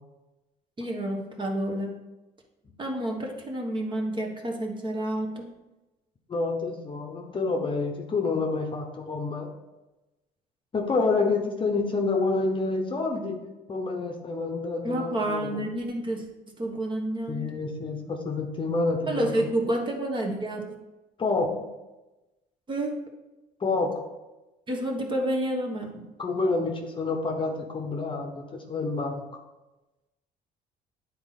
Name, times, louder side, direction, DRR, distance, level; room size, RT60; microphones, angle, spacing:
voice 1, 0.8-2.0 2.8-5.5 14.8-16.2 16.6-17.5 19.1-20.7 22.7-23.0 24.7-26.0, right 1 dB, 30° right, 1 dB, 1.3 m, -29 dB
voice 2, 6.3-9.5 10.7-13.4 13.7-15.5 17.3-19.5 21.2-21.7 23.6-24.0 26.2-29.2, left 3 dB, 30° left, 3 dB, 0.9 m, -28 dB
9.4 x 4.1 x 4.1 m, 1.1 s
cardioid pair, 110°, 17 cm